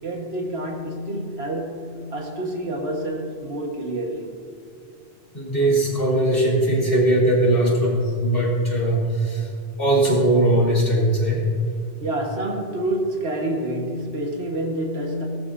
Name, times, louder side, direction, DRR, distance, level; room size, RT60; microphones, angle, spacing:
voice 1, 0.0-4.4 12.0-15.2, right 1 dB, 60° right, 0 dB, 1.8 m, -28 dB
voice 2, 5.3-9.5 9.8-11.4, right 1 dB, 50° left, -6 dB, 3.5 m, -20 dB
18.5 x 13.0 x 2.7 m, 2.3 s
omnidirectional pair, 1.2 m